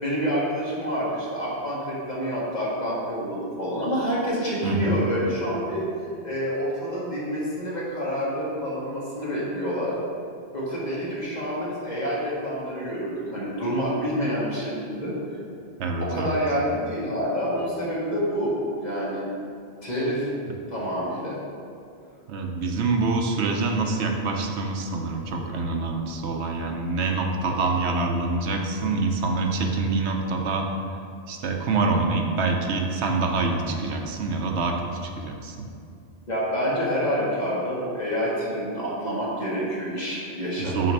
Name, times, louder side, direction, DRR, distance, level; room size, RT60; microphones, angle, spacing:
voice 1, 0.0-5.9 6.2-9.9 10.5-15.1 16.0-18.5 18.8-19.3 19.8-20.3 20.7-21.4 36.3-40.9, equal, 40° left, -7 dB, 1.7 m, -28 dB
voice 2, 4.6-5.0 15.8-16.4 22.3-30.7 31.3-34.8 35.0-35.7 40.6-40.9, right 3 dB, 75° right, 2 dB, 0.9 m, -26 dB
6.5 x 4.3 x 5.3 m, 2.4 s
omnidirectional pair, 1.2 m